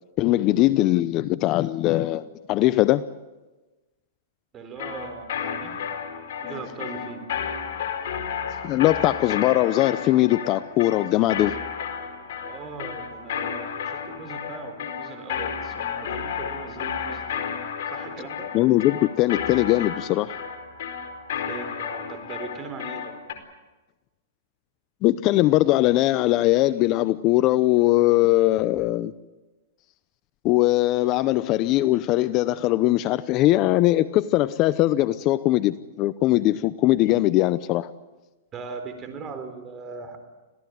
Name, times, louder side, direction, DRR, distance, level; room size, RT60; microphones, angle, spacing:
voice 1, 0.2-3.0 8.6-11.5 18.5-20.3 25.0-29.1 30.4-37.9, left 16 dB, 35° left, 0.7 m, -21 dB
voice 2, 4.5-5.8 6.4-7.2 12.4-17.5 17.9-18.5 21.5-23.1 38.5-40.2, right 4 dB, 25° right, 4.2 m, -39 dB
sound 1, 4.8-23.3, left 7 dB, 60° left, 4.5 m, -32 dB
26.5 x 17.0 x 9.4 m
hypercardioid pair, 145°, 0 cm